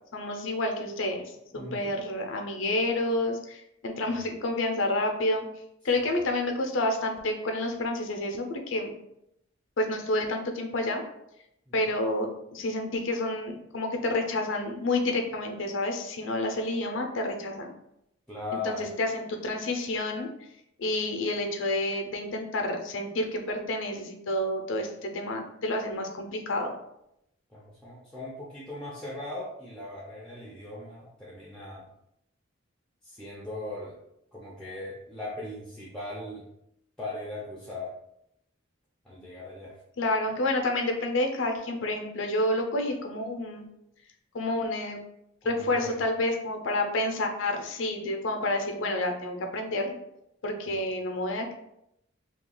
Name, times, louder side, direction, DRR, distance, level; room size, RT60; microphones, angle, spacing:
voice 1, 0.1-1.2 1.5-5.4 5.8-8.9 9.8-11.0 11.7-17.7 18.6-20.3 20.8-26.7 40.0-43.7 44.3-45.0 45.4-49.9 50.4-51.5, left 1 dB, 65° left, 4 dB, 0.5 m, -29 dB
voice 2, 1.5-1.9 11.7-11.8 18.3-18.9 27.5-31.8 33.0-33.9 34.3-36.4 37.0-37.9 39.0-39.8 45.4-46.0 50.7-50.8, left 2 dB, 5° left, -6 dB, 0.5 m, -39 dB
2.9 x 2.3 x 3.7 m, 0.80 s
head